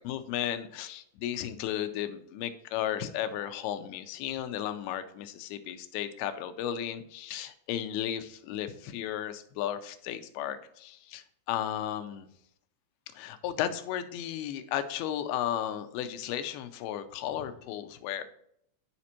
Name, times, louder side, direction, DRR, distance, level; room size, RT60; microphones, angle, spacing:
voice 1, 0.0-12.3 13.2-18.2, left 11 dB, 85° left, 9 dB, 2.6 m, -34 dB
11.0 x 5.1 x 2.9 m, 0.70 s
omnidirectional pair, 4.4 m